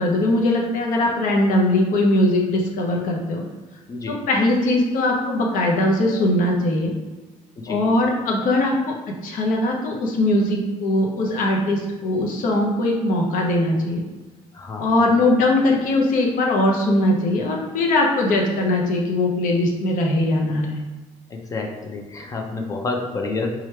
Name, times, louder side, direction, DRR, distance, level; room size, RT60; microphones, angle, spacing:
voice 1, 0.0-3.5 4.1-6.9 7.7-8.9 9.2-14.0 14.8-20.8, left 1 dB, 75° left, 0 dB, 0.7 m, -20 dB
voice 2, 3.9-4.2 7.6-7.8 14.5-15.0 21.3-23.5, left 3 dB, 25° left, 2 dB, 0.4 m, -29 dB
3.2 x 2.4 x 4.3 m, 1.2 s
cardioid pair, 170°, 14 cm